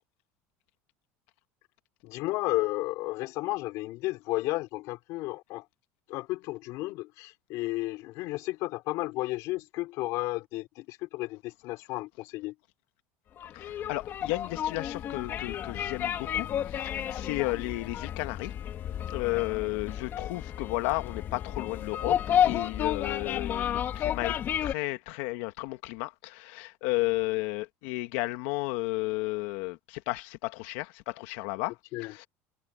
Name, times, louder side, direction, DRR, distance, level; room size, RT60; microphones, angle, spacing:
voice 1, 2.0-5.6 6.1-12.5 31.9-32.1, left 19 dB, 60° left, 4.6 m, -33 dB
sound 1, 13.4-24.7, left 10 dB, 35° left, 2.1 m, -31 dB
voice 2, 13.5-18.5 19.1-24.4 24.6-32.3, left 21 dB, 80° left, 1.7 m, -33 dB
cardioid pair, 160°, 6 cm